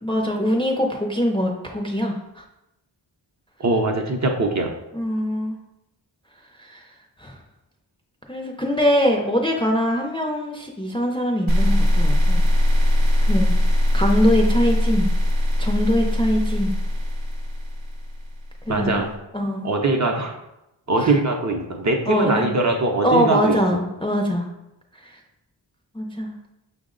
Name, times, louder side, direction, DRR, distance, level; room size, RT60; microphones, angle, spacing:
voice 1, 0.0-2.4 4.9-5.6 6.6-6.8 7.2-7.4 8.3-12.4 13.3-13.5 13.9-15.1 15.6-16.7 18.7-19.0 19.3-19.7 21.0-21.1 22.1-22.5 23.0-24.5 24.9-25.2 25.9-26.3, equal, 10° left, 0 dB, 0.4 m, -22 dB
voice 2, 3.6-4.7 18.7-19.1 19.6-20.4 20.9-23.6, right 2 dB, 40° right, 3 dB, 0.5 m, -21 dB
sound 1, 11.5-18.6, left 1 dB, 90° right, 0.7 m, -20 dB
5.8 x 2.0 x 3.7 m, 0.90 s
wide cardioid pair, 100°, 46 cm